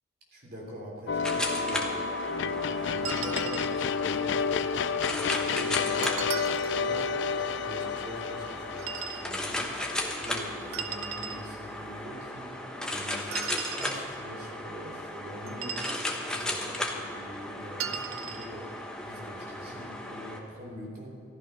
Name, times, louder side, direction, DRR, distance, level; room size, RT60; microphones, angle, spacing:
voice 1, 0.3-2.0 2.3-15.9 16.3-21.1, left 1 dB, 45° right, -2 dB, 3.4 m, -44 dB
sound 1, 1.1-10.3, left 6 dB, 55° left, 0.4 m, -30 dB
sound 2, 1.2-20.4, left 1 dB, 5° left, 1.0 m, -36 dB
sound 3, 3.0-3.8 6.0-6.8 8.8-9.3 10.7-11.4 13.3-14.0 15.5-16.1 17.8-18.5, right 8 dB, 75° right, 0.7 m, -36 dB
15.0 x 11.5 x 5.6 m, 2.6 s
head